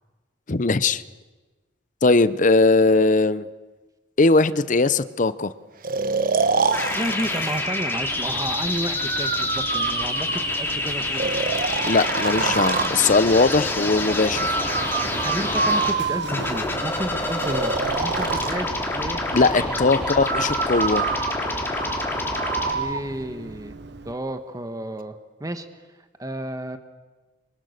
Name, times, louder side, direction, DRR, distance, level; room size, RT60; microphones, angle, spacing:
voice 1, 0.5-1.0 2.0-3.5 4.2-5.5 11.9-14.5 19.3-21.1, left 3 dB, 45° left, 15 dB, 0.7 m, -19 dB
Breathing, 5.8-7.6 9.0-10.6 11.2-13.0 14.3-16.6 17.4-18.6 20.2-23.0, right 4 dB, 50° right, 1.2 m, -26 dB
sound 1, 6.7-15.9 16.3-22.7, left 2 dB, 15° left, 3.5 m, -27 dB
voice 2, 6.9-11.3 12.1-12.2 15.1-19.8 22.7-23.8 24.0-25.7 26.2-26.8, right 1 dB, 20° right, 8 dB, 1.4 m, -32 dB
Run, 8.0-24.1, right 3 dB, 70° right, 1.2 m, -38 dB
26.5 x 24.0 x 6.7 m, 1.2 s
head